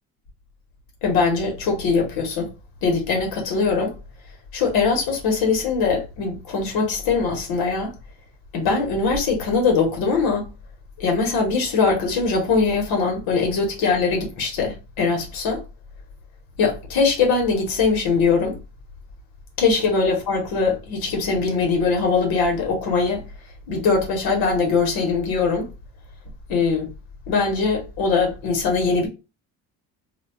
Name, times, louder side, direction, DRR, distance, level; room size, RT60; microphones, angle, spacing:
voice 1, 1.0-2.5 2.8-4.0 4.5-7.9 8.5-10.5 11.0-15.6 16.6-18.6 19.6-23.2 23.7-25.7 26.5-26.9 27.3-29.1, left 4 dB, 80° left, 1.0 m, -21 dB
2.3 x 2.2 x 3.3 m
cardioid pair, 150°, 36 cm